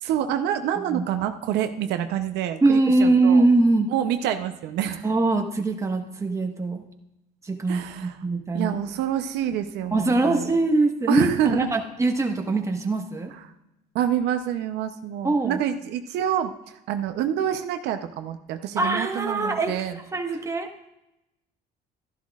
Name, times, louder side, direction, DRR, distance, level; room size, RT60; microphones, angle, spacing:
voice 1, 0.0-3.4 3.9-5.1 7.7-8.2 8.5-10.5 11.1-11.7 13.9-16.5 16.9-20.0, right 10 dB, 85° right, 8 dB, 0.7 m, -27 dB
voice 2, 2.6-3.9 5.0-6.8 7.4-8.7 9.9-13.3 15.2-15.6 18.8-20.7, right 2 dB, 20° right, 3 dB, 1.3 m, -22 dB
13.0 x 11.5 x 2.4 m, 0.91 s
cardioid pair, 110°, 17 cm